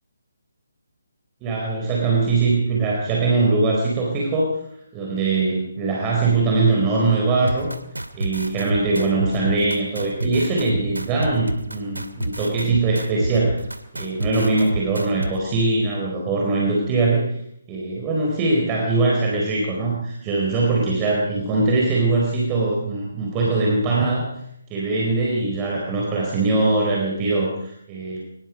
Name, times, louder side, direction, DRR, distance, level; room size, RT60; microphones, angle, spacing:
voice 1, 1.4-4.5 4.9-7.7 8.1-13.6 13.9-17.3 17.7-24.3 24.7-28.2, right 3 dB, 20° right, -2 dB, 4.5 m, -21 dB
sound 1, 7.5-15.3, right 1 dB, 80° right, 2.4 m, -28 dB
24.5 x 20.5 x 5.3 m, 0.77 s
figure-of-eight pair, 145°, 0 cm